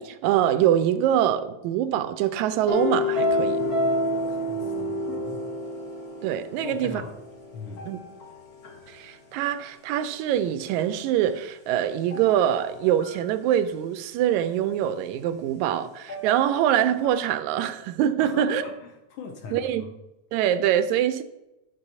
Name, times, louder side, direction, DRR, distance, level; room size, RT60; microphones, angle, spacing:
voice 1, 0.0-3.6 6.2-7.0 7.8-8.0 8.9-18.6 19.5-19.9 20.3-21.2, right 10 dB, 85° right, 2.0 m, -24 dB
sound 1, 2.7-8.9 12.1-12.7 13.0-13.3 16.1-16.7 17.0-17.1, left 1 dB, 45° left, 1.3 m, -29 dB
voice 2, 4.3-5.4 6.6-7.1 7.5-7.9 18.2-19.9, left 5 dB, 70° left, 1.2 m, -39 dB
10.5 x 3.8 x 6.6 m
omnidirectional pair, 3.3 m